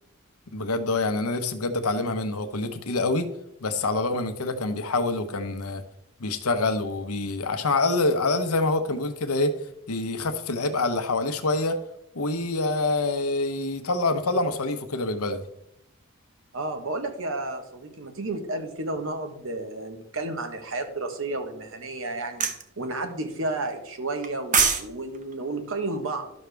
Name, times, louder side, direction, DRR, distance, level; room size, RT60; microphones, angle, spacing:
voice 1, 0.5-3.3 3.6-5.8 6.2-9.5 9.9-11.8 12.1-15.4, left 2 dB, 80° left, 8 dB, 0.9 m, -26 dB
voice 2, 16.5-26.3, right 2 dB, 60° right, 6 dB, 1.2 m, -32 dB
sound 1, 22.4-22.6 24.2-24.9 25.1-25.3, right 6 dB, 35° right, 0.8 m, -22 dB
12.0 x 6.4 x 3.4 m, 0.81 s
head